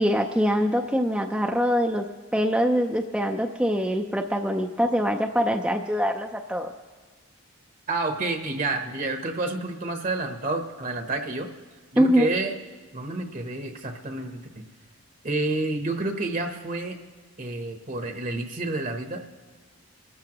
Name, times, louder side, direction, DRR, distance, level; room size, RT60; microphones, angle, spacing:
voice 1, 0.0-2.1 2.3-6.7 12.0-12.3, equal, 5° right, 2 dB, 0.5 m, -23 dB
voice 2, 7.9-11.5 11.9-12.5 12.9-14.6 15.2-17.0 17.4-19.3, right 2 dB, 35° right, 5 dB, 0.9 m, -29 dB
29.5 x 13.5 x 3.0 m, 1.5 s
head